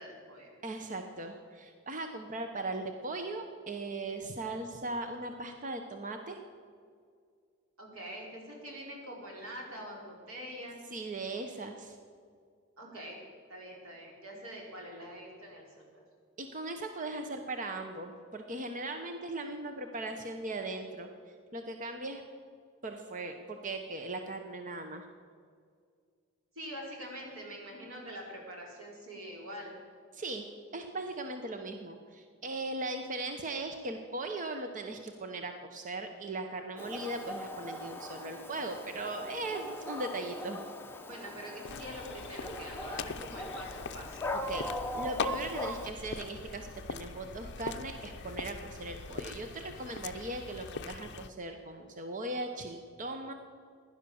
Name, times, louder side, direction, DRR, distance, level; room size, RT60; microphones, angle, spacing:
voice 1, 0.0-0.5 7.8-10.8 12.8-13.2 13.5-16.0 26.5-29.7 41.1-44.2, equal, 85° right, -1 dB, 4.5 m, -44 dB
voice 2, 0.6-6.4 10.9-12.0 16.4-21.1 21.5-22.2 22.8-25.1 30.1-30.5 30.7-40.6 44.5-44.7 44.9-53.3, right 2 dB, 40° right, 5 dB, 0.9 m, -38 dB
Dog, 36.8-45.9, left 1 dB, 10° left, 1.0 m, -40 dB
sound 1, 41.6-51.3, left 5 dB, 55° left, 0.6 m, -42 dB
16.0 x 11.0 x 7.0 m, 2.2 s
head